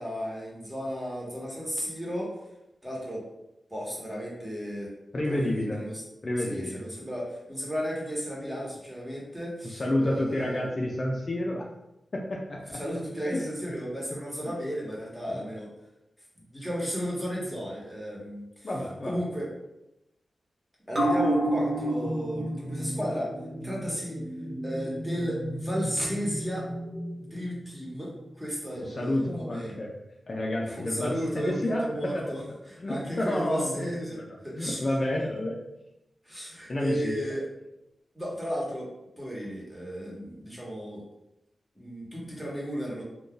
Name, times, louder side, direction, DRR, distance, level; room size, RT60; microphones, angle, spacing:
voice 1, 0.0-2.3 2.8-3.2 3.7-4.9 5.3-6.0 6.4-10.7 12.7-15.7 16.5-18.7 19.0-19.5 20.9-23.3 23.6-24.2 24.6-26.7 27.2-29.8 30.6-34.8 35.2-35.3 36.2-37.4 38.1-38.9 39.2-41.0 41.8-43.0, equal, 5° right, -5 dB, 1.1 m, -34 dB
voice 2, 5.1-5.8 6.2-6.8 9.6-11.7 12.1-12.8 13.3-13.4 14.4-14.5 18.6-19.2 28.7-29.9 30.3-32.2 32.8-33.9 34.5-35.6 36.7-37.2, left 1 dB, 45° left, -1 dB, 0.4 m, -29 dB
sound 1, 20.9-27.8 28.2-28.3, right 1 dB, 45° right, 0.9 m, -31 dB
2.5 x 2.3 x 3.7 m, 0.87 s
wide cardioid pair, 75°, 0 cm